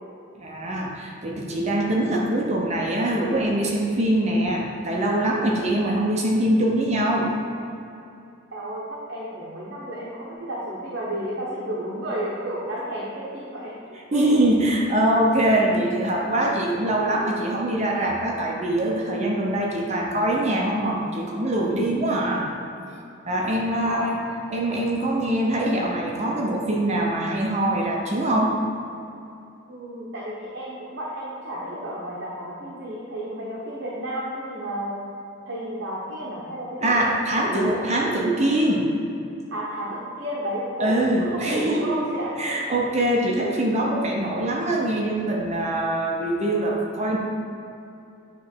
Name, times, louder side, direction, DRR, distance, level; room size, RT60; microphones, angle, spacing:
voice 1, 0.3-7.3 14.1-22.5 23.2-24.2 24.5-28.6 36.8-38.9 40.8-41.9 42.4-47.2, right 1 dB, 30° right, -1 dB, 0.7 m, -23 dB
voice 2, 8.5-14.4 23.8-24.1 29.7-35.0 35.5-37.8 39.5-42.3, right 1 dB, 55° right, -6 dB, 1.0 m, -32 dB
9.1 x 3.1 x 4.5 m, 2.7 s
head